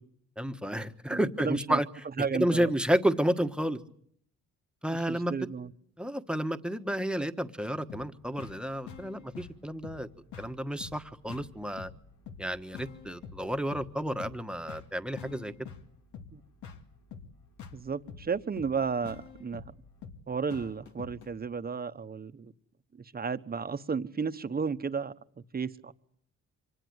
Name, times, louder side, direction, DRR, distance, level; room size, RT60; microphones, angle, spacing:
voice 1, 0.4-1.9 2.3-3.8 4.8-5.3 6.0-10.1 10.4-11.9 12.4-15.5, equal, 5° right, 1.3 m, -31 dB
voice 2, 1.1-1.8 2.2-2.7 4.9-5.7 16.3-16.4 17.7-19.6 20.3-22.5 23.1-25.1 25.5-25.9, right 5 dB, 30° right, 1.1 m, -33 dB
sound 1, 7.9-21.3, left 6 dB, 75° left, 2.1 m, -47 dB
25.0 x 19.0 x 8.0 m
cardioid pair, 90°, 30 cm